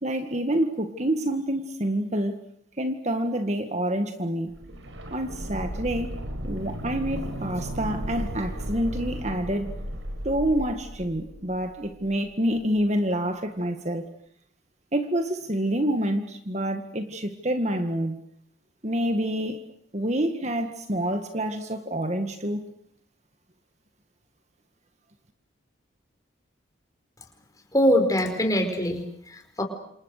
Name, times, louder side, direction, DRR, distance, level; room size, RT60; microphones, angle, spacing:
voice 1, 0.0-2.4 2.8-4.5 5.1-6.1 6.4-9.7 10.2-14.1 14.9-18.2 18.8-19.6 19.9-22.7, right 1 dB, 35° right, 7 dB, 1.8 m, -27 dB
sound 1, 4.5-12.3 12.6-12.7, equal, 80° right, 5.3 m, -35 dB
voice 2, 27.7-29.6, equal, 20° left, 4 dB, 4.8 m, -23 dB
28.5 x 28.0 x 6.6 m, 0.70 s
head